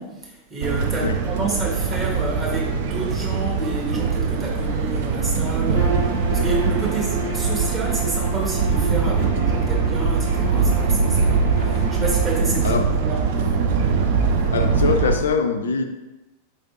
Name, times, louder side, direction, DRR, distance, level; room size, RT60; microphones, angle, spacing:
voice 1, 0.0-13.2, right 3 dB, 20° right, -3 dB, 1.3 m, -30 dB
sound 1, 0.6-15.2, right 5 dB, 55° right, 0.5 m, -22 dB
Bowed string instrument, 5.7-12.4, right 1 dB, 85° right, 1.4 m, -32 dB
voice 2, 14.5-15.8, left 5 dB, 65° left, 5 dB, 0.3 m, -22 dB
4.6 x 3.3 x 2.9 m, 1.0 s
figure-of-eight pair, 90°, 0 cm